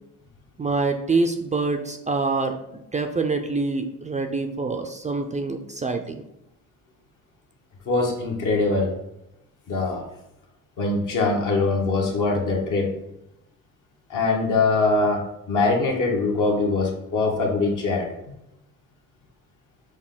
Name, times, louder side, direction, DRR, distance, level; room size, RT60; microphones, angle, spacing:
voice 1, 0.6-6.2, right 3 dB, 20° right, 6 dB, 0.4 m, -26 dB
voice 2, 7.9-8.9 9.7-10.1 10.8-13.0 14.1-18.1, left 3 dB, 65° left, 0 dB, 1.3 m, -22 dB
6.2 x 2.2 x 3.8 m, 0.84 s
cardioid pair, 85°, 34 cm